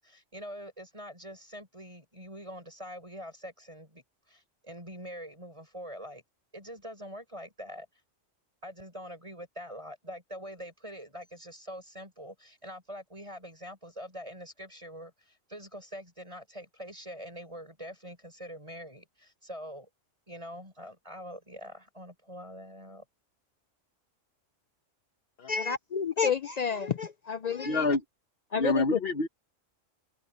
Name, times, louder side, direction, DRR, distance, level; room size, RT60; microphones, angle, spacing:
voice 1, 0.0-6.2 6.5-7.9 8.6-19.9 20.3-23.0, equal, 25° right, 7.0 m, -44 dB
voice 2, 25.5-27.9 28.5-29.0, left 6 dB, 75° left, 0.3 m, -30 dB
voice 3, 27.6-28.0 28.6-29.3, left 3 dB, 50° left, 1.2 m, -27 dB
omnidirectional pair, 1.3 m